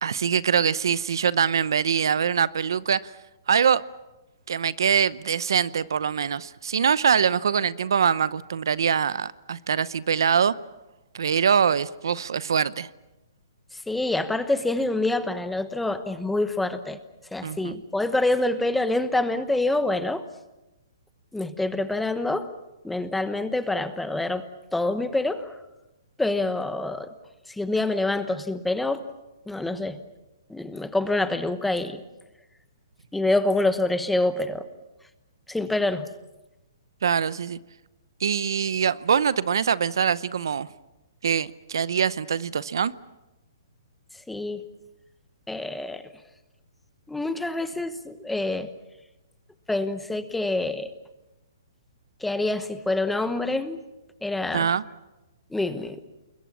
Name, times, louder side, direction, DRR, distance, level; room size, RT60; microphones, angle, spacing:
voice 1, 0.0-3.1 3.5-3.8 4.5-10.5 11.1-12.9 17.4-17.7 37.0-37.6 38.2-40.7 41.2-43.0 54.5-54.8, right 7 dB, 75° right, 0.8 m, -23 dB
voice 2, 13.7-17.0 17.3-20.2 21.3-22.5 22.8-24.4 24.7-25.5 26.2-27.1 27.5-29.0 29.5-30.0 30.5-32.0 33.1-34.6 35.5-36.1 44.3-44.6 45.5-46.0 47.1-48.7 49.7-50.9 52.2-53.8 54.2-54.7 55.5-56.0, left 2 dB, 5° left, 1.1 m, -26 dB
28.5 x 22.0 x 7.3 m
hypercardioid pair, 155°, 2 cm